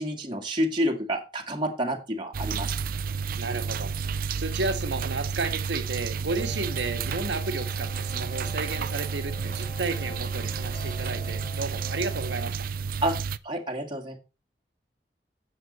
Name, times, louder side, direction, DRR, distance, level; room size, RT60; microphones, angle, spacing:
voice 1, 0.0-2.8 13.0-13.2 13.4-14.2, equal, 30° right, 1.9 m, -29 dB
sound 1, 2.3-13.4, right 5 dB, 55° right, 0.5 m, -31 dB
voice 2, 3.4-3.9 4.4-12.6, right 3 dB, 85° right, 1.7 m, -32 dB
sound 2, 6.3-12.5, left 1 dB, 35° left, 3.6 m, -45 dB
10.5 x 8.1 x 4.3 m
head